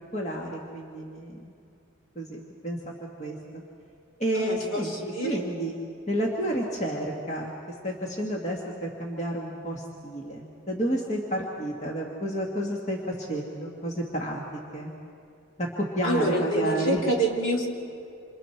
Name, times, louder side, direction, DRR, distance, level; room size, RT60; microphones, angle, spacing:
voice 1, 0.1-1.5 2.2-2.9 3.2-3.4 4.2-4.9 5.2-5.7 6.1-7.5 7.8-14.4 14.7-14.9 15.6-17.0, right 1 dB, 35° left, -1 dB, 1.8 m, -30 dB
voice 2, 4.3-5.4 16.0-17.7, right 1 dB, 85° left, 0 dB, 3.2 m, -27 dB
27.5 x 27.5 x 4.5 m, 2.4 s
head